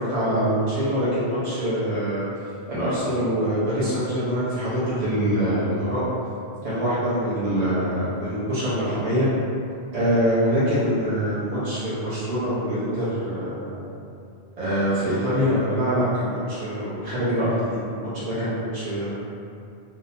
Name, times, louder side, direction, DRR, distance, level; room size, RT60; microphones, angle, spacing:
voice 1, 0.0-2.2 2.7-6.0 6.6-9.3 9.9-13.9 14.6-19.1, equal, 45° right, -11 dB, 0.6 m, -24 dB
2.8 x 2.1 x 2.5 m, 2.5 s
omnidirectional pair, 1.1 m